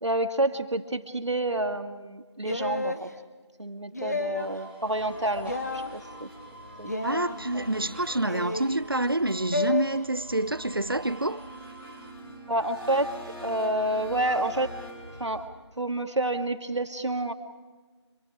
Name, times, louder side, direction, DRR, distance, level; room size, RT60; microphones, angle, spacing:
voice 1, 0.0-3.1 3.6-6.3 6.8-7.1 7.5-7.7 12.5-13.1 13.4-14.7 15.2-15.4 15.8-17.3, right 1 dB, 75° right, 2.3 m, -29 dB
sound 1, 2.4-3.0 3.9-4.6 5.4-5.9 6.8-7.4 8.3-8.8 9.5-9.8, left 2 dB, 35° left, 1.3 m, -30 dB
sound 2, 4.3-12.1, right 1 dB, 20° right, 2.1 m, -49 dB
sound 3, 4.8-15.5, equal, ahead, 2.6 m, -45 dB
voice 2, 7.0-11.4, right 2 dB, 50° right, 0.7 m, -27 dB
27.0 x 23.5 x 5.0 m
figure-of-eight pair, 180°, 15 cm